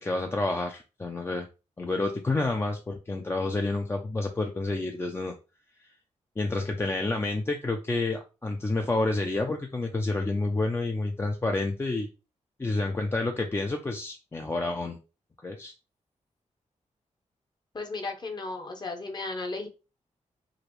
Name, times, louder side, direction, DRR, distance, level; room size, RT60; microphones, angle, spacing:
voice 1, 0.0-1.5 1.8-5.3 6.4-12.1 12.6-15.0 15.4-15.7, left 2 dB, 20° left, 3 dB, 0.4 m, -29 dB
voice 2, 17.7-19.7, left 3 dB, 35° left, 4 dB, 0.8 m, -35 dB
4.8 x 2.6 x 3.0 m, 0.30 s
wide cardioid pair, 155°, 13 cm